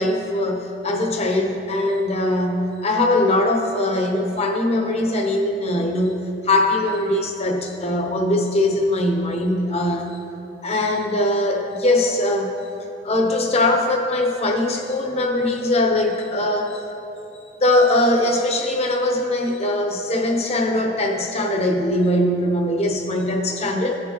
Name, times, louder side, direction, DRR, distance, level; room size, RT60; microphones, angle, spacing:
voice 1, 0.0-6.1 6.4-10.1 10.6-12.5 13.0-16.8 17.6-24.0, left 1 dB, 35° left, 2 dB, 0.9 m, -21 dB
14.5 x 5.9 x 3.0 m, 2.8 s
head